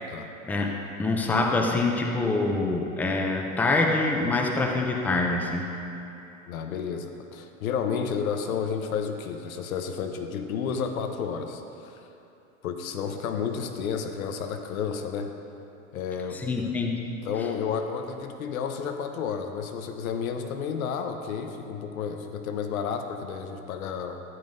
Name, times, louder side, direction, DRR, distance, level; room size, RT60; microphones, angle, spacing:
voice 1, 0.5-5.7 16.3-17.0, left 3 dB, 5° left, 1 dB, 0.4 m, -25 dB
voice 2, 6.5-12.1 12.6-15.3 15.9-16.7 17.2-24.2, left 6 dB, 85° left, 6 dB, 0.9 m, -31 dB
14.0 x 8.5 x 2.6 m, 2.9 s
supercardioid pair, 130°, 41 cm